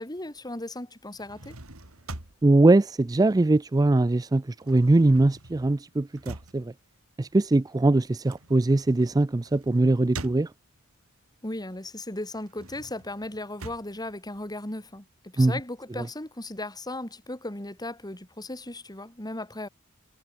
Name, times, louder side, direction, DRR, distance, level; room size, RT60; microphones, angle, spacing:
voice 1, 0.0-1.5 11.4-19.7, left 1 dB, 20° left, 3.6 m, -36 dB
sound 1, 1.0-3.9 4.2-11.0 11.5-15.0, right 2 dB, 80° right, 4.0 m, -45 dB
voice 2, 2.4-6.7 7.2-10.5 15.4-15.6, right 2 dB, 15° right, 0.4 m, -21 dB
head